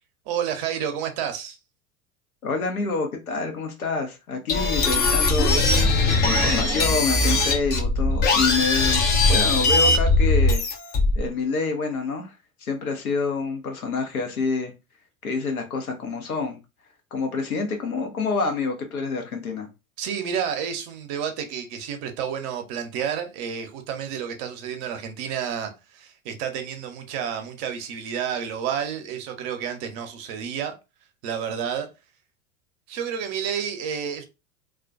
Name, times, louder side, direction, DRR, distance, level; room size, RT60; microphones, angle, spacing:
voice 1, 0.3-1.6 20.0-30.7 31.2-31.9 32.9-34.2, right 8 dB, 45° right, 0.7 m, -30 dB
voice 2, 2.4-5.6 6.2-10.6 11.2-14.7 15.2-16.6 17.1-19.7, left 4 dB, 80° left, 0.8 m, -27 dB
sound 1, 4.5-11.3, left 2 dB, 25° left, 0.5 m, -20 dB
2.3 x 2.2 x 2.5 m
figure-of-eight pair, 85°, 42 cm